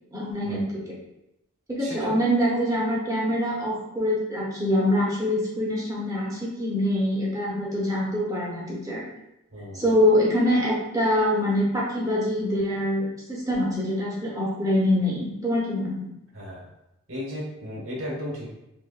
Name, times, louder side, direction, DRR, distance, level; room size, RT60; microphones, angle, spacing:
voice 1, 0.1-1.0 1.7-9.0 9.7-16.1, equal, 15° right, -5 dB, 0.8 m, -24 dB
voice 2, 1.8-2.1 9.5-9.8 16.3-16.6 17.1-18.5, equal, 65° right, -4 dB, 1.1 m, -35 dB
3.4 x 2.9 x 2.3 m, 0.86 s
head